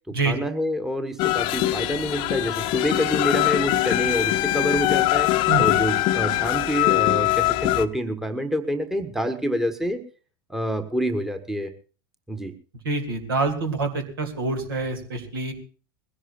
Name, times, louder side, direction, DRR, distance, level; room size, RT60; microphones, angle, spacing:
voice 1, 0.1-5.3 5.6-10.0 10.5-11.7 12.3-12.5, equal, 5° right, 10 dB, 1.3 m, -27 dB
sound 1, 1.2-7.9, left 16 dB, 40° left, 0.8 m, -22 dB
voice 2, 12.8-15.5, right 3 dB, 65° right, 5 dB, 2.9 m, -26 dB
21.0 x 16.5 x 2.5 m, 0.36 s
figure-of-eight pair, 85°, 13 cm